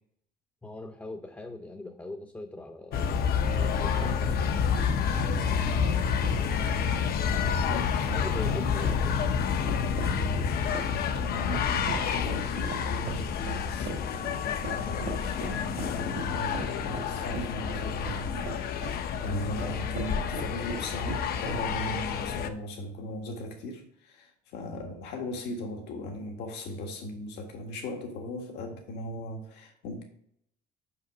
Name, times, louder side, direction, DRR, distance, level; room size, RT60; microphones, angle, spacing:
voice 1, 0.6-3.2 3.6-4.3 8.0-9.1, left 2 dB, 10° left, 0.7 m, -41 dB
sound 1, 2.9-22.5, left 7 dB, 65° left, 0.7 m, -29 dB
sound 2, 3.6-21.9, right 4 dB, 70° right, 1.9 m, -41 dB
voice 2, 6.9-9.0 10.0-10.7 11.1-30.0, left 1 dB, 85° left, 1.6 m, -38 dB
5.7 x 5.7 x 5.1 m
cardioid pair, 110°, 17 cm